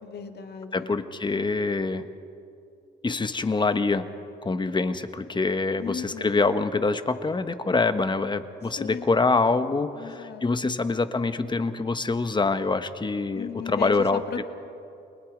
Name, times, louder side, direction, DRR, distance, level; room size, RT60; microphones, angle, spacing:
voice 1, 0.0-1.0 5.8-6.4 8.8-9.1 9.9-10.7 13.3-14.4, left 6 dB, 55° left, 6 dB, 1.7 m, -36 dB
voice 2, 0.7-2.0 3.0-4.1 4.4-14.4, left 3 dB, 25° left, 10 dB, 1.2 m, -25 dB
29.0 x 21.0 x 5.1 m, 2.6 s
cardioid pair, 90°, 20 cm